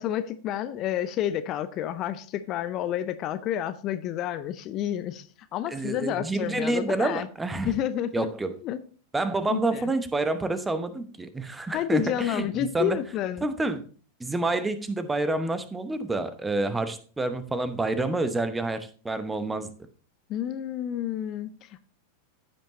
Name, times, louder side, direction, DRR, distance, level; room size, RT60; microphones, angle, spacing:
voice 1, 0.0-7.3 7.7-8.3 8.6-8.8 9.5-9.9 11.7-13.4 20.3-21.8, left 11 dB, 35° left, 11 dB, 0.5 m, -30 dB
voice 2, 5.7-7.7 8.1-8.5 9.1-13.0 13.4-13.8 14.2-19.7, right 2 dB, 10° right, 12 dB, 0.9 m, -28 dB
14.5 x 5.4 x 2.9 m, 0.41 s
figure-of-eight pair, 90°, 0 cm